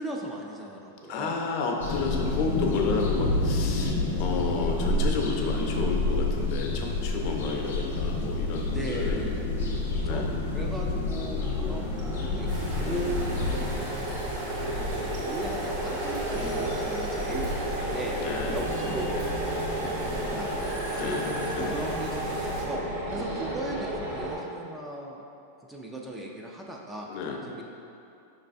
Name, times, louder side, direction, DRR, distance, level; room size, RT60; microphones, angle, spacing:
voice 1, 0.0-1.4 8.7-9.4 9.9-10.2 10.5-12.5 12.8-13.2 13.5-14.0 14.5-18.2 18.5-19.2 20.0-21.2 21.6-25.2 25.7-27.1 27.4-27.6, right 1 dB, 10° right, -1 dB, 0.3 m, -38 dB
voice 2, 1.1-9.2 10.0-10.4 12.8-13.5 18.2-18.6 20.9-21.8 23.1-23.5 27.1-27.4, left 4 dB, 50° left, 1 dB, 0.5 m, -32 dB
sound 1, 1.8-13.8, left 2 dB, 85° left, 0.8 m, -28 dB
sound 2, 10.8-24.3, right 1 dB, 50° right, 1.4 m, -33 dB
sound 3, 12.5-22.6, equal, 75° right, 1.2 m, -36 dB
5.0 x 3.2 x 2.6 m, 2.7 s
supercardioid pair, 145°, 0 cm